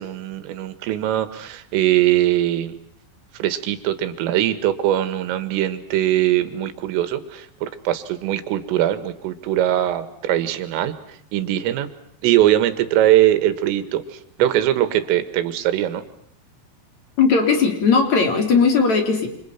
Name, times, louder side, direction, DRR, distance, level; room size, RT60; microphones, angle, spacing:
voice 1, 0.0-2.7 3.3-11.9 12.2-16.0, right 13 dB, 85° right, 11 dB, 4.2 m, -21 dB
voice 2, 17.2-19.3, left 5 dB, 40° left, 5 dB, 4.2 m, -17 dB
29.0 x 26.5 x 5.9 m, 0.69 s
omnidirectional pair, 5.8 m